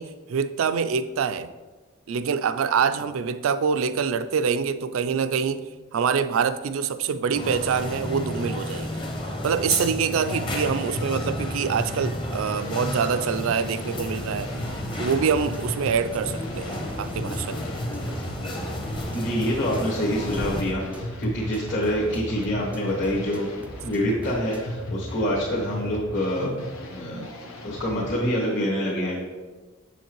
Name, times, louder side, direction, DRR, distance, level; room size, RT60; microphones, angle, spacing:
voice 1, 0.0-1.5 2.1-9.0 9.4-14.5 15.0-17.7, right 6 dB, 75° right, 12 dB, 0.4 m, -25 dB
sound 1, 7.3-20.6, left 1 dB, 25° left, 0.8 m, -32 dB
sound 2, 10.2-28.2, left 1 dB, 85° left, 0.9 m, -36 dB
sound 3, 14.4-24.6, right 1 dB, 5° right, 0.4 m, -44 dB
voice 2, 19.1-23.5 23.8-26.6 26.9-27.3 27.6-29.2, equal, 55° left, -7 dB, 1.4 m, -26 dB
7.1 x 7.0 x 3.0 m, 1.3 s
head